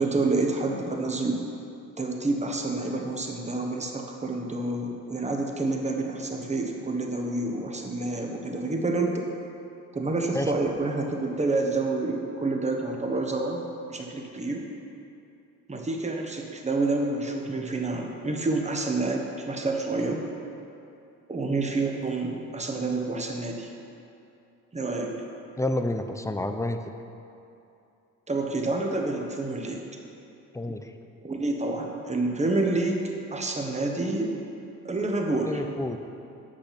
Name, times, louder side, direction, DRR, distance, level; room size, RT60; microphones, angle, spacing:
voice 1, 0.0-1.5 2.0-9.2 9.9-13.6 13.9-14.7 15.7-20.2 21.3-23.7 24.7-25.1 28.3-29.8 31.2-33.0 33.3-34.3 34.8-35.6, right 2 dB, 20° right, 2 dB, 1.3 m, -28 dB
voice 2, 25.6-26.8 30.5-30.9 35.4-36.0, left 2 dB, 10° left, 7 dB, 0.6 m, -29 dB
8.8 x 6.5 x 6.0 m, 2.7 s
cardioid pair, 90°, 30 cm